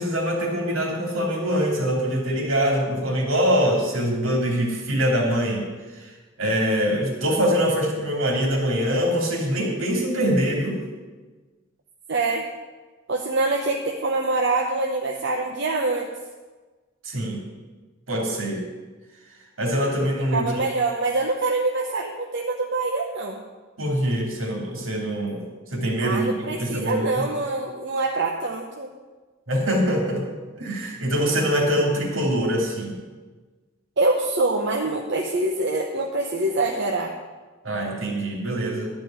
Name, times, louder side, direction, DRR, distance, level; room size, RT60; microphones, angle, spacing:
voice 1, 0.0-5.6 6.0-6.1 6.4-10.8 17.0-17.4 18.1-18.6 19.6-20.6 23.8-25.4 25.7-27.2 29.5-30.3 30.6-33.0 37.6-38.9, equal, 80° right, 0 dB, 2.9 m, -24 dB
voice 2, 12.1-12.4 13.1-16.1 20.3-23.4 26.0-28.9 34.0-37.1, right 2 dB, 60° right, 0 dB, 0.9 m, -25 dB
11.5 x 5.3 x 8.8 m, 1.3 s
head